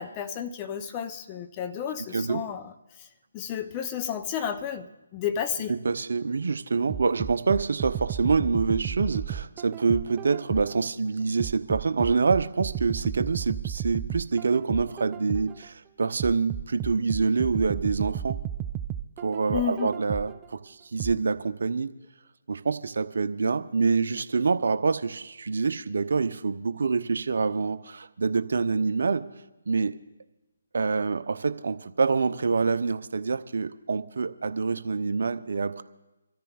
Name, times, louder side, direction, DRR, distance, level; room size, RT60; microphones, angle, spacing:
voice 1, 0.0-2.7 3.3-5.7 19.5-19.9, left 8 dB, 20° left, 7 dB, 0.7 m, -32 dB
voice 2, 5.7-18.4 19.2-21.9 22.5-29.2 29.7-30.0 30.7-35.8, right 4 dB, 65° right, 12 dB, 0.7 m, -26 dB
sound 1, 6.9-10.9 11.4-15.6 16.2-20.4 21.0-21.1, right 10 dB, 15° right, 0.4 m, -33 dB
27.0 x 13.5 x 2.4 m, 1.0 s
figure-of-eight pair, 150°, 0 cm